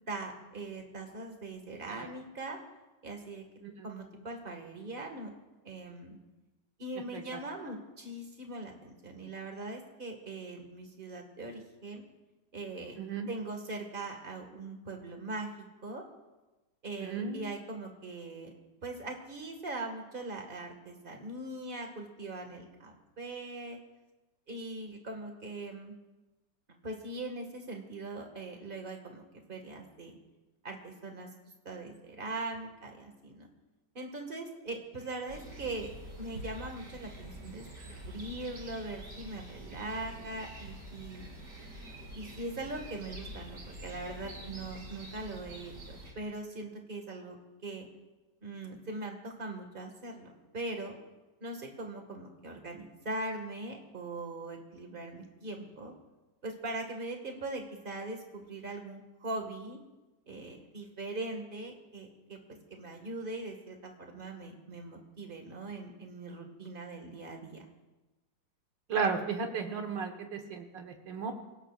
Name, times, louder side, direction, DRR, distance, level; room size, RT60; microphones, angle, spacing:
voice 1, 0.1-2.6 3.0-3.4 3.8-5.3 5.6-6.2 6.8-12.0 12.5-13.0 13.3-16.0 16.8-18.5 18.8-23.8 24.5-25.9 26.8-29.2 29.5-30.2 30.6-31.3 31.6-33.5 33.9-35.9 36.2-41.3 42.1-47.4 47.6-47.9 48.4-51.0 51.4-55.9 56.4-59.8 60.3-62.4 62.7-67.6, right 2 dB, 30° right, 3 dB, 2.0 m, -41 dB
voice 2, 13.0-13.3 17.0-17.5 68.9-71.3, right 5 dB, 80° right, 4 dB, 2.2 m, -34 dB
sound 1, 35.3-46.1, right 1 dB, 60° right, 3.5 m, -46 dB
25.5 x 17.0 x 2.5 m, 1.1 s
omnidirectional pair, 1.9 m